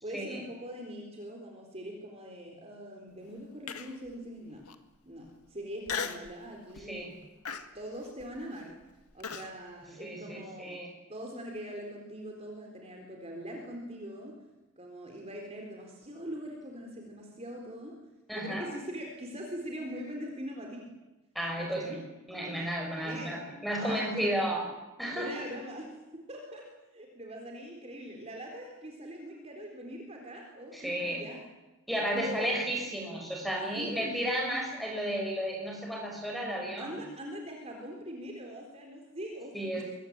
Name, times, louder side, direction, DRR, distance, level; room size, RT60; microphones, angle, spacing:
voice 1, 0.0-4.6 5.1-7.1 7.7-8.8 9.1-10.8 11.1-14.3 14.8-17.9 18.3-20.9 21.6-22.0 23.0-23.4 23.7-24.3 25.1-26.6 26.9-31.4 32.1-32.6 33.7-34.2 36.8-39.5, equal, 30° right, 1 dB, 4.0 m, -42 dB
Human voice, 3.7-4.1 4.7-4.8 5.9-6.3 6.8-7.0 7.5-9.5, left 6 dB, 85° left, 2.0 m, -37 dB
voice 2, 6.8-7.1 10.0-10.9 18.3-18.7 21.3-22.0 22.3-24.6 25.0-25.3 30.7-31.2 31.9-37.0 39.5-39.8, right 1 dB, ahead, 1 dB, 6.8 m, -33 dB
25.0 x 23.0 x 9.0 m, 1.1 s
head